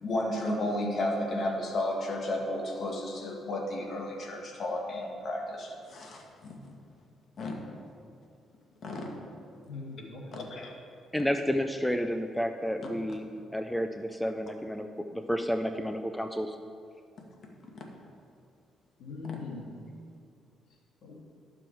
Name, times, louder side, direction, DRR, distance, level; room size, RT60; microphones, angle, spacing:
voice 1, 0.0-6.7 7.4-7.5 8.8-9.1 10.3-10.7 17.7-17.8, left 1 dB, 55° left, 0 dB, 1.7 m, -33 dB
voice 2, 9.7-10.5 19.0-19.8 21.0-21.2, left 3 dB, 75° left, -3 dB, 2.4 m, -41 dB
voice 3, 11.1-13.3 13.5-16.6, equal, 5° left, 6 dB, 0.5 m, -31 dB
11.5 x 6.2 x 4.7 m, 2.3 s
cardioid pair, 90°, 0 cm